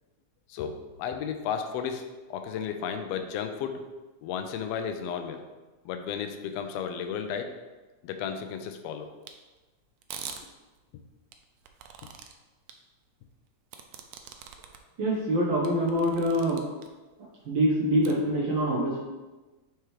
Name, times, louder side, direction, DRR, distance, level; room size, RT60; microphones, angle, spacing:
voice 1, 0.5-2.0 2.3-3.8 4.2-5.4 5.8-7.5 8.0-9.1, left 7 dB, 90° left, 6 dB, 1.4 m, -33 dB
sound 1, 9.3-9.4 10.0-10.4 11.3-12.3 12.7-12.8 13.7-14.8 15.2-15.3 15.6-16.9 18.0-18.1, right 8 dB, 80° right, 1.5 m, -42 dB
voice 2, 15.0-16.6 17.5-19.0, equal, 65° right, -5 dB, 1.2 m, -25 dB
4.8 x 4.5 x 4.7 m, 1.2 s
omnidirectional pair, 3.4 m